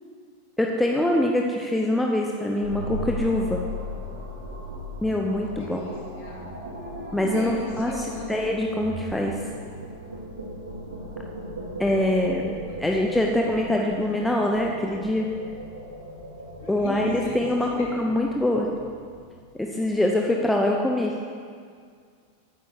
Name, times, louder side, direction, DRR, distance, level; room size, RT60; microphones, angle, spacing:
voice 1, 0.6-3.6 5.0-5.8 7.1-9.4 11.8-15.3 16.7-18.7 19.5-21.2, left 1 dB, 5° left, 0 dB, 0.9 m, -24 dB
sound 1, 2.6-19.8, right 1 dB, 75° right, 2.1 m, -37 dB
voice 2, 5.5-8.5 12.6-12.8 14.1-14.3 16.6-17.9, left 3 dB, 50° left, -3 dB, 2.8 m, -38 dB
9.2 x 8.3 x 6.4 m, 2.1 s
figure-of-eight pair, 90°, 0 cm